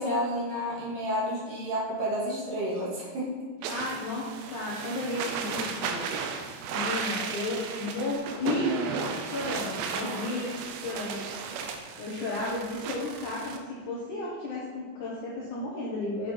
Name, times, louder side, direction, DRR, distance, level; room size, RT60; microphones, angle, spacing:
voice 1, 0.0-3.8, equal, 55° right, -5 dB, 3.2 m, -31 dB
sound 1, 3.6-13.6, right 5 dB, 90° right, 3.0 m, -34 dB
voice 2, 3.7-6.3 6.7-8.7 9.2-16.3, left 2 dB, 65° left, -5 dB, 2.0 m, -34 dB
8.3 x 7.3 x 4.4 m, 1.5 s
omnidirectional pair, 5.0 m